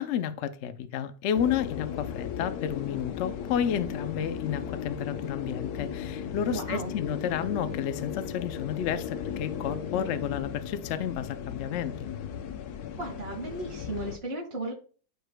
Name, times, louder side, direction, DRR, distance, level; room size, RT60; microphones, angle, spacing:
voice 1, 0.0-12.0, left 9 dB, 85° left, 0.6 m, -31 dB
sound 1, 1.3-14.2, left 8 dB, 65° left, 1.0 m, -36 dB
voice 2, 6.5-6.9 13.0-14.7, right 2 dB, 35° right, 2.0 m, -35 dB
13.0 x 4.7 x 2.2 m
omnidirectional pair, 2.0 m